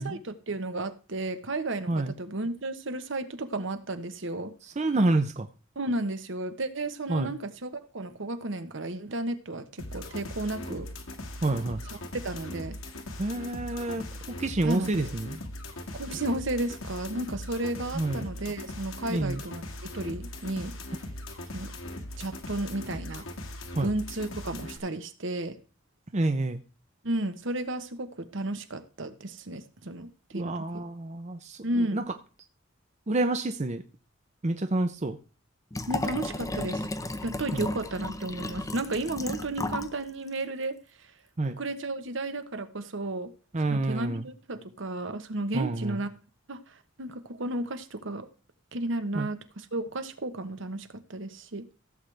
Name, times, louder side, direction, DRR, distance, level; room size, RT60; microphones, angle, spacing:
voice 1, 0.0-4.5 5.8-10.9 11.9-12.8 14.6-15.1 16.0-19.6 19.9-20.7 21.5-21.7 22.2-23.2 23.8-25.6 27.0-30.8 31.6-32.1 35.8-36.9 37.2-40.8 41.6-43.3 43.7-46.1 46.5-48.3 48.7-51.7, right 2 dB, 65° right, 10 dB, 1.1 m, -33 dB
voice 2, 4.8-5.5 7.1-7.3 11.4-11.8 13.2-15.4 17.9-18.3 19.1-19.4 23.8-23.9 26.1-26.6 30.3-32.0 33.1-33.8 34.4-35.2 37.5-37.7 41.4-41.6 43.5-44.3 45.5-46.0 49.1-49.3, right 2 dB, 35° right, 8 dB, 0.6 m, -28 dB
sound 1, 9.8-24.8, left 1 dB, 85° left, 1.8 m, -40 dB
Liquid, 35.7-39.9 40.3-40.4, left 2 dB, 15° left, 0.6 m, -34 dB
15.5 x 7.8 x 3.3 m, 0.35 s
head